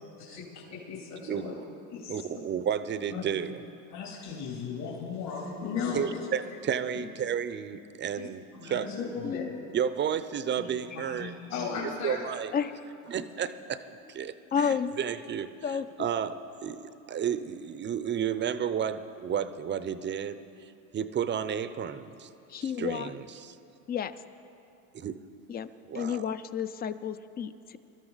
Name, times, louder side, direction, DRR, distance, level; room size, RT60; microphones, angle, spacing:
voice 1, 0.2-1.6 1.9-2.4 3.1-3.2 3.9-6.2 8.2-8.3 8.5-9.5 10.5-12.2, left 5 dB, 60° left, -4 dB, 3.2 m, -36 dB
voice 2, 2.1-3.6 5.9-8.9 9.7-11.3 11.7-12.5 13.1-13.8 14.1-14.3 14.6-15.5 16.0-16.4 16.6-22.3 22.8-23.5 24.9-25.2 25.9-26.3, right 8 dB, 25° right, 13 dB, 0.6 m, -32 dB
voice 3, 9.2-9.6 12.5-12.8 14.5-14.9 15.6-16.1 22.5-23.1 23.9-24.2 25.5-25.7 25.9-27.8, left 7 dB, 25° left, 14 dB, 0.4 m, -31 dB
23.5 x 13.0 x 4.0 m, 2.7 s
supercardioid pair, 100°, 46 cm